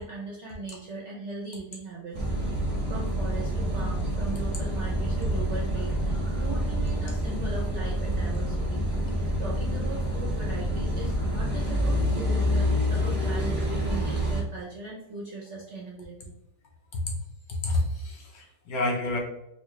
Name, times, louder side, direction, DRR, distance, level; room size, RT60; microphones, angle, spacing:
voice 1, 0.0-2.5 2.9-8.8 9.1-16.1, right 2 dB, 60° right, -3 dB, 0.7 m, -39 dB
Car passing by / Idling / Accelerating revving vroom, 2.1-14.4, equal, 30° right, 0.8 m, -27 dB
voice 2, 17.6-19.2, left 2 dB, 65° left, -1 dB, 1.3 m, -28 dB
4.3 x 2.2 x 3.0 m, 0.85 s
omnidirectional pair, 1.8 m